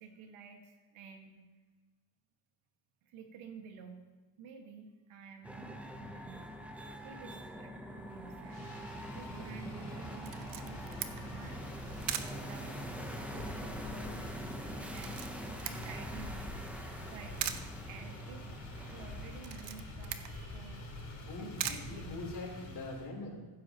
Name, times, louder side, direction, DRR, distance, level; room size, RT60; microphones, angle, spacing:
voice 1, 0.0-1.4 3.0-11.7 12.2-16.4 17.1-18.4 18.8-20.9 21.4-22.2, right 6 dB, 90° right, 4 dB, 1.8 m, -52 dB
sound 1, 5.4-19.8, equal, 5° right, 0.7 m, -44 dB
Motor vehicle (road), 8.4-23.1, left 1 dB, 30° left, 3.5 m, -46 dB
Camera, 10.2-22.7, right 10 dB, 60° right, 0.9 m, -44 dB
voice 2, 21.0-23.5, left 2 dB, 55° left, -1 dB, 3.5 m, -43 dB
15.0 x 12.5 x 3.0 m, 1.3 s
cardioid pair, 155°, 48 cm